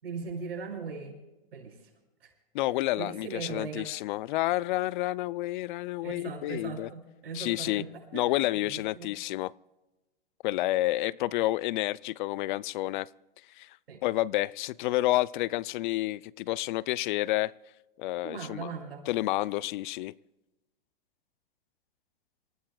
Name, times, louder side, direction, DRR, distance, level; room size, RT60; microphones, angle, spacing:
voice 1, 0.0-1.2 1.5-1.8 2.2-2.3 3.0-3.9 6.0-9.1 13.9-14.0 18.2-19.1, right 5 dB, 85° right, 1 dB, 6.7 m, -39 dB
voice 2, 2.5-6.9 7.3-7.8 8.1-9.5 10.4-13.1 13.6-13.8 14.0-17.5 18.0-18.7 19.1-20.1, left 17 dB, 55° left, 21 dB, 0.5 m, -29 dB
28.0 x 17.0 x 2.3 m, 1.0 s
hypercardioid pair, 120°, 29 cm